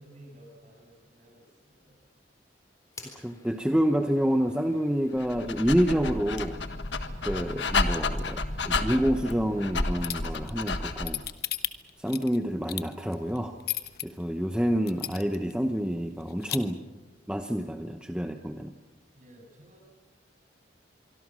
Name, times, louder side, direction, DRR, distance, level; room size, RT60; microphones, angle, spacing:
voice 1, 0.0-2.0 19.1-19.9, right 1 dB, 40° right, 1 dB, 7.7 m, -53 dB
sound 1, 2.9-10.3, left 3 dB, 15° left, 3.9 m, -54 dB
voice 2, 3.1-6.6 7.2-11.2 12.0-13.6 14.0-16.8 17.3-18.7, equal, 5° right, 5 dB, 0.8 m, -28 dB
Dog, 5.2-11.3, left 3 dB, 70° left, 1.5 m, -31 dB
sound 2, 10.0-14.0 14.5-14.6 14.9-15.5 15.8-15.9 16.2-16.6, left 13 dB, 55° left, 1.1 m, -33 dB
25.5 x 24.0 x 6.3 m, 1.2 s
head